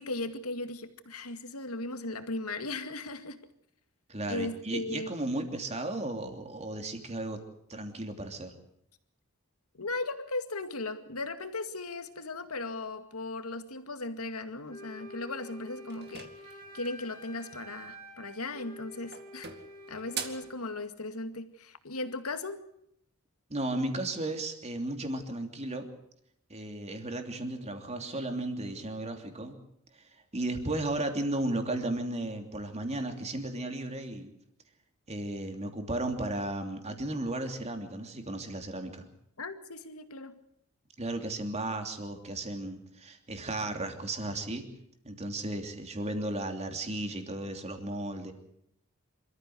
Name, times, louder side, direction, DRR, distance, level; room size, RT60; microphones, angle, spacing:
voice 1, 0.0-3.4 4.3-5.1 9.7-19.5 19.9-22.6 39.4-40.3, left 2 dB, 85° left, 8 dB, 2.2 m, -37 dB
voice 2, 4.1-7.4 7.7-8.5 23.5-25.9 26.5-29.6 30.3-34.3 35.1-39.1 41.0-44.7 45.0-48.3, right 1 dB, 30° right, 5 dB, 3.1 m, -34 dB
Wind instrument woodwind instrument, 14.7-20.6, equal, 15° left, 4.5 m, -48 dB
sound 1, 15.9-17.1 18.4-18.8 19.1-20.6, right 7 dB, 50° right, 2.3 m, -42 dB
26.5 x 14.5 x 8.0 m, 0.75 s
head